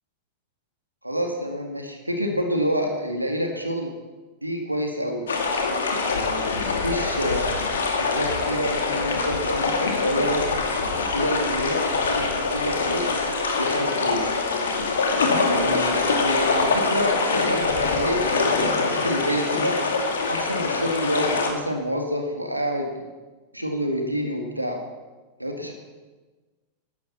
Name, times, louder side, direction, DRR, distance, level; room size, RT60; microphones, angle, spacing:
voice 1, 1.0-3.9 4.4-5.3 6.0-10.5 11.0-13.2 13.6-14.4 15.4-19.8 20.3-23.1 23.5-24.8 25.4-25.7, equal, 85° right, 3 dB, 2.0 m, -28 dB
sound 1, 5.3-21.5, left 4 dB, 65° left, 2.4 m, -24 dB
14.5 x 11.5 x 7.2 m, 1.3 s
figure-of-eight pair, 90°, 0 cm